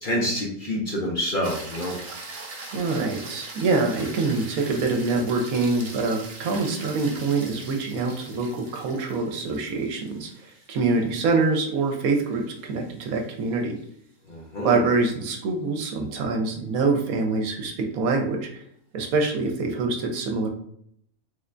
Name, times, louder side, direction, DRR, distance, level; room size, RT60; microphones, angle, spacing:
voice 1, 0.0-1.9 14.3-14.8, equal, 50° left, -3 dB, 0.6 m, -27 dB
sound 1, 1.4-13.8 18.3-18.4, right 3 dB, 50° right, 0.6 m, -42 dB
voice 2, 2.7-13.8 14.6-18.5 18.9-20.5, right 3 dB, 75° right, 3 dB, 1.1 m, -25 dB
3.3 x 3.2 x 2.5 m, 0.68 s
omnidirectional pair, 1.5 m